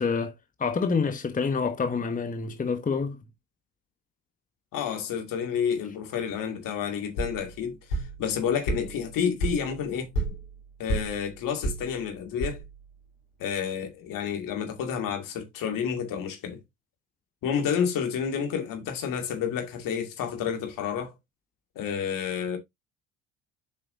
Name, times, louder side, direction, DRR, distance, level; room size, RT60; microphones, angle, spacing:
voice 1, 0.0-3.2, left 5 dB, 20° left, 1.1 m, -27 dB
voice 2, 4.7-10.1 10.8-12.6 13.4-16.6 17.4-21.1 21.8-22.6, left 7 dB, 60° left, 2.3 m, -30 dB
sound 1, 7.2-13.0, right 2 dB, 85° left, 3.7 m, -33 dB
7.8 x 5.6 x 2.7 m
hypercardioid pair, 60°, 38 cm